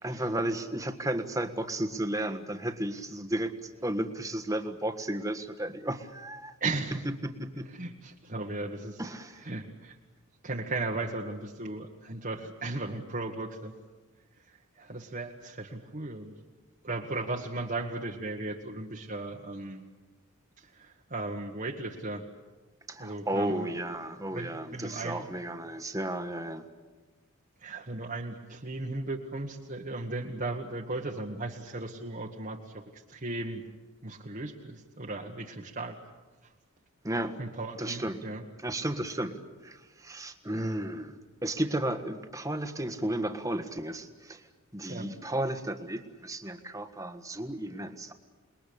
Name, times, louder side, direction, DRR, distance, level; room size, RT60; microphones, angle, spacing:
voice 1, 0.0-6.5 7.2-7.6 9.0-9.4 22.9-26.7 37.0-37.4 37.8-38.2 38.6-39.3 39.6-41.1 41.4-44.4 44.7-48.1, right 1 dB, 15° right, 7 dB, 1.5 m, -33 dB
voice 2, 6.6-7.0 7.7-9.0 9.4-10.0 10.4-13.7 14.8-16.3 16.8-19.8 20.7-22.2 23.0-23.7 24.3-25.2 27.6-33.6 34.0-36.0 37.4-38.4 44.9-45.1, right 2 dB, 40° right, -1 dB, 1.5 m, -36 dB
28.5 x 21.0 x 8.6 m, 1.2 s
head